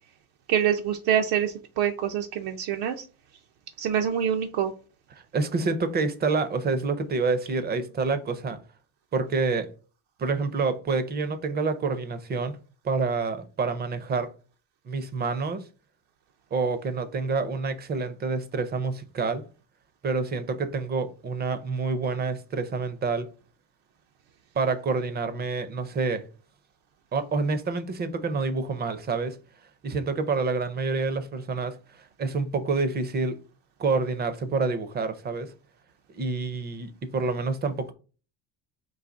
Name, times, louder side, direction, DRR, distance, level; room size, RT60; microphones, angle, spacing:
voice 1, 0.5-3.0 3.8-4.7, right 9 dB, 70° right, 0.6 m, -25 dB
voice 2, 5.1-8.6 9.1-9.7 10.2-12.6 12.8-14.3 14.9-15.7 16.5-19.5 20.0-23.3 24.6-26.3 27.1-29.4 29.8-33.4 33.8-35.5 36.1-37.9, right 4 dB, 25° right, 0.5 m, -28 dB
4.0 x 2.7 x 3.7 m
cardioid pair, 145°, 39 cm